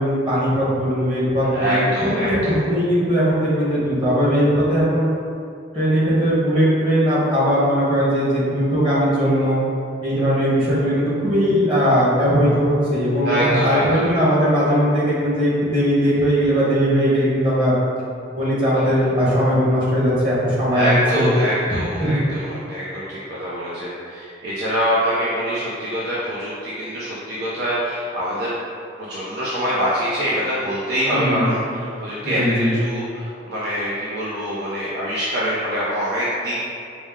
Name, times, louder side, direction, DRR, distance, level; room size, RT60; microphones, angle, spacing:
voice 1, 0.0-5.1 5.7-9.6 10.0-17.7 18.3-21.3 22.0-22.2 31.1-31.5 32.2-32.7, equal, 25° right, -9 dB, 1.2 m, -19 dB
voice 2, 1.5-2.6 13.2-14.2 18.7-19.0 20.7-28.5 29.1-36.6, equal, 55° right, -8 dB, 0.6 m, -24 dB
5.0 x 2.1 x 3.6 m, 2.5 s
head